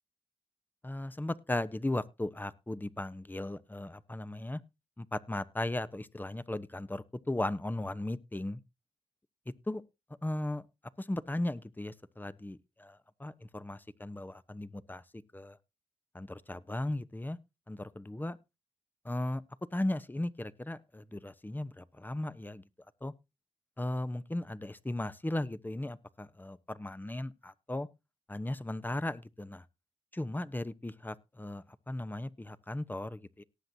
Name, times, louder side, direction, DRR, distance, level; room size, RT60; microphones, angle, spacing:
voice 1, 0.8-4.6 5.0-8.6 9.7-9.8 10.2-10.6 11.0-15.0 15.3-15.6 16.1-17.4 17.7-18.4 19.0-19.4 19.7-22.6 23.0-23.1 23.8-27.9 28.3-29.6 30.1-33.4, left 1 dB, 15° left, 14 dB, 1.0 m, -36 dB
18.0 x 7.8 x 2.8 m, 0.26 s
cardioid pair, 55°, 12 cm